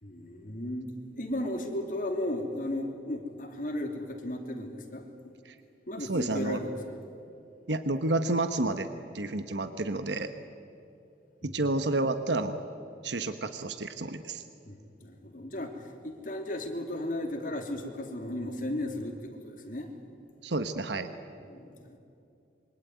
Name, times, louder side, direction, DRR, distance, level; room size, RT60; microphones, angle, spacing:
voice 1, 0.0-5.1 5.9-7.0 11.4-11.5 14.7-19.9 21.5-22.0, left 1 dB, 50° left, 4 dB, 3.1 m, -35 dB
voice 2, 6.0-6.6 7.7-8.9 9.1-10.3 11.4-12.6 13.0-14.4 20.4-21.1, right 2 dB, 80° right, 9 dB, 1.2 m, -30 dB
26.5 x 23.5 x 9.5 m, 2.7 s
head